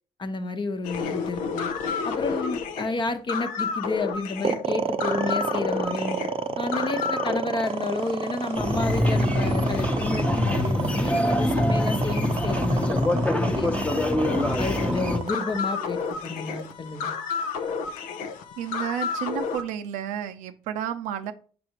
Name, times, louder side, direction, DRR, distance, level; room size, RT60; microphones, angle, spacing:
voice 1, 0.2-1.7 2.0-6.2 6.6-14.0 14.6-17.1, left 3 dB, 40° left, 1.0 m, -31 dB
sound 1, 0.8-7.4 7.7-19.6, left 5 dB, 85° left, 0.6 m, -33 dB
sound 2, 4.4-16.7, right 6 dB, 45° right, 0.7 m, -30 dB
sound 3, 8.5-15.2, left 1 dB, 10° left, 0.9 m, -24 dB
voice 2, 18.6-21.3, right 9 dB, 85° right, 0.6 m, -31 dB
6.1 x 5.5 x 2.9 m
supercardioid pair, 60°, 13 cm